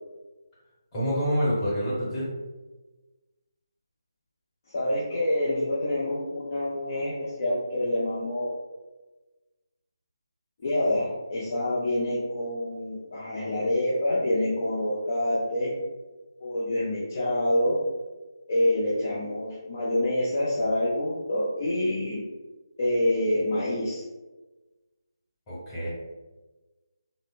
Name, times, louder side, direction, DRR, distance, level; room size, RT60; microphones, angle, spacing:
voice 1, 0.9-2.3 25.5-25.9, equal, 20° left, -9 dB, 1.1 m, -27 dB
voice 2, 4.7-8.5 10.6-15.7 16.4-17.8 18.5-22.2 22.8-24.0, left 1 dB, 40° left, -7 dB, 0.5 m, -27 dB
2.8 x 2.0 x 2.4 m, 1.2 s
figure-of-eight pair, 155°, 2 cm